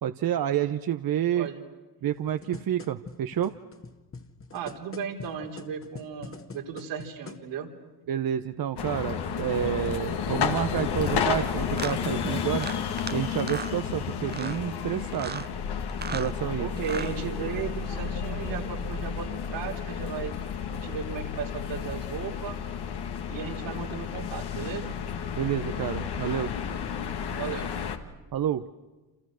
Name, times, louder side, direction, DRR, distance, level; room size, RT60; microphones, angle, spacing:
voice 1, 0.0-1.5 2.0-3.5 8.1-12.7 13.1-15.5 16.1-16.7 25.4-26.5 28.3-28.6, right 10 dB, 55° right, 9 dB, 1.0 m, -29 dB
sound 1, 2.1-7.5 8.1-8.2, left 4 dB, 30° left, 2.0 m, -45 dB
voice 2, 4.5-7.7 16.6-20.3 20.8-22.6 23.3-25.0 27.4-27.7, right 7 dB, 80° right, 1 dB, 4.0 m, -35 dB
sound 2, 8.8-28.0, left 7 dB, 65° left, 2.2 m, -32 dB
sound 3, 11.0-11.2 11.7-12.0 12.6-13.1 13.4-13.8 14.3-14.6 15.1-15.5 15.9-16.3 16.8-17.1, right 5 dB, 25° right, 0.9 m, -36 dB
29.0 x 27.5 x 6.4 m, 1.2 s
supercardioid pair, 75°, 42 cm